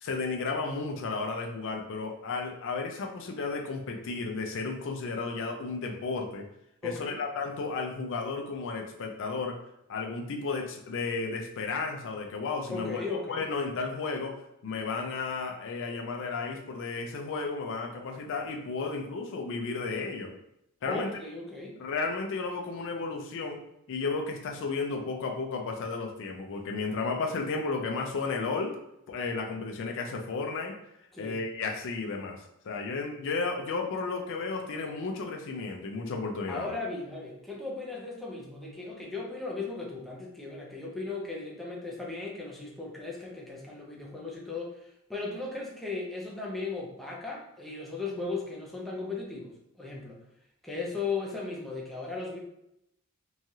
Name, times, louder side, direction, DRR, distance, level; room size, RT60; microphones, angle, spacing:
voice 1, 0.0-6.4 6.8-9.6 9.9-14.3 14.6-20.3 20.8-21.2 21.8-23.6 23.9-28.7 29.1-30.7 31.2-36.8, left 4 dB, 60° left, 2 dB, 0.4 m, -33 dB
voice 2, 6.8-7.2 12.7-13.4 20.9-21.8 31.1-31.4 36.5-50.2 50.6-52.4, left 3 dB, ahead, -3 dB, 0.5 m, -37 dB
3.1 x 2.3 x 2.7 m, 0.81 s
head